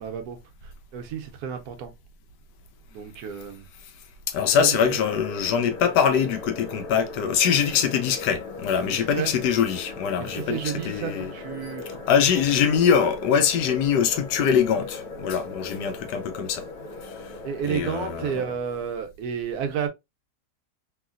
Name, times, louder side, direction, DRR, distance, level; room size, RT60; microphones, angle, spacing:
voice 1, 0.0-1.9 2.9-3.7 4.6-5.0 8.9-9.3 10.2-12.0 12.3-12.4 17.4-19.9, right 7 dB, 70° right, 1.0 m, -32 dB
voice 2, 4.3-11.3 12.1-16.7 17.0-17.4 17.6-18.3, left 7 dB, 85° left, 1.2 m, -23 dB
sound 1, 4.3-18.5, left 3 dB, 60° left, 1.1 m, -39 dB
3.1 x 2.7 x 2.4 m
omnidirectional pair, 1.8 m